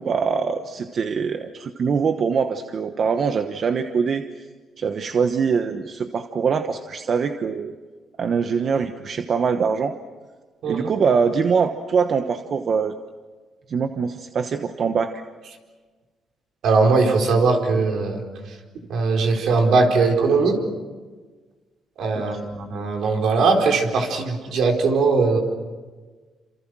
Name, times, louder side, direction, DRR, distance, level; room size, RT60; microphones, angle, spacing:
voice 1, 0.0-4.4 4.8-7.7 8.2-9.9 10.7-13.0 13.7-15.2 22.1-22.4, right 6 dB, 50° right, 8 dB, 1.2 m, -23 dB
voice 2, 16.6-18.2 18.9-20.6 22.0-25.4, right 4 dB, 75° right, 2 dB, 4.3 m, -20 dB
28.5 x 27.0 x 6.3 m, 1.4 s
cardioid pair, 90°, 0 cm